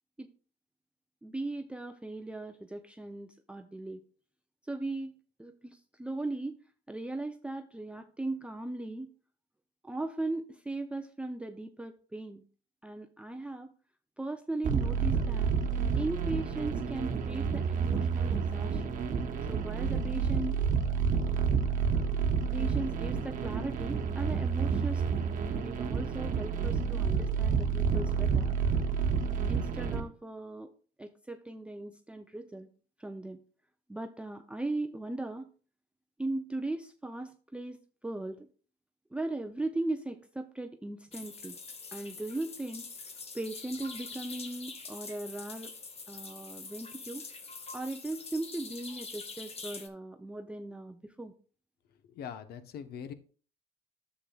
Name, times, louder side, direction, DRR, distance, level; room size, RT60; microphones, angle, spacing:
voice 1, 1.2-4.0 4.7-6.6 6.9-9.1 9.8-12.4 12.8-13.7 14.2-15.5 16.0-19.0 19.5-20.7 22.5-28.6 29.5-30.7 31.0-32.7 33.0-33.4 33.9-35.5 36.2-38.5 39.1-41.6 41.9-42.9 43.3-45.7 46.1-47.2 47.7-51.3, right 2 dB, 5° right, 5 dB, 0.5 m, -38 dB
sound 1, 14.6-30.0, right 6 dB, 50° right, 1.1 m, -29 dB
sound 2, 41.1-49.9, left 4 dB, 35° left, 1.3 m, -45 dB
voice 2, 52.0-53.1, left 8 dB, 65° left, 10 dB, 0.9 m, -42 dB
10.5 x 7.5 x 2.3 m, 0.40 s
cardioid pair, 110°, 17 cm